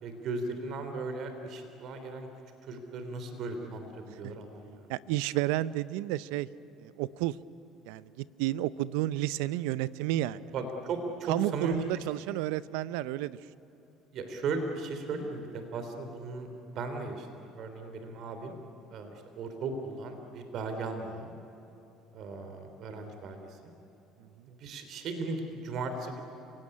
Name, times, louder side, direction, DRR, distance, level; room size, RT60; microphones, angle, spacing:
voice 1, 0.0-2.3 2.7-4.9 10.5-12.0 14.1-18.5 18.9-21.3 22.1-23.6 24.5-26.2, right 3 dB, 60° right, 7 dB, 3.1 m, -37 dB
voice 2, 4.9-6.5 6.8-7.4 7.8-10.4 11.3-13.4, right 15 dB, 85° right, 18 dB, 0.6 m, -31 dB
29.0 x 17.5 x 9.8 m, 2.9 s
supercardioid pair, 85°, 0 cm